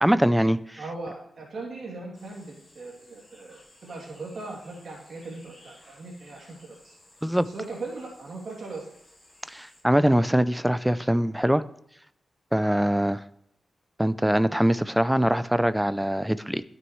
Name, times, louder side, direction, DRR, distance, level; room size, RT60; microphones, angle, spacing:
voice 1, 0.0-0.8 7.2-7.5 9.5-11.6 12.5-13.2 14.0-16.6, equal, 5° right, 14 dB, 0.4 m, -23 dB
voice 2, 0.8-7.0 7.5-8.9, right 3 dB, 60° right, -1 dB, 2.7 m, -39 dB
sound 1, 2.1-9.8, left 1 dB, 15° left, 5.0 m, -56 dB
12.5 x 9.5 x 3.2 m, 0.73 s
wide cardioid pair, 150°, 0 cm